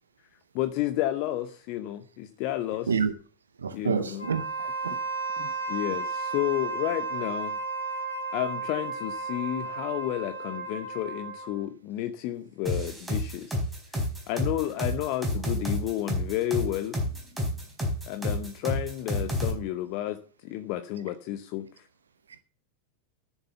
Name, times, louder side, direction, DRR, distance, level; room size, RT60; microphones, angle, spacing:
voice 1, 0.5-2.9 3.7-4.3 5.4-7.6 8.3-13.6 13.9-17.0 18.1-21.9, left 14 dB, 45° left, 0.8 m, -31 dB
voice 2, 3.6-5.0, right 6 dB, 70° right, 0.6 m, -28 dB
Wind instrument woodwind instrument, 4.1-11.6, right 3 dB, 75° left, 4.0 m, -33 dB
sound 1, 12.7-19.5, left 1 dB, 10° right, 4.4 m, -29 dB
10.5 x 7.1 x 6.9 m
figure-of-eight pair, 90°, 0 cm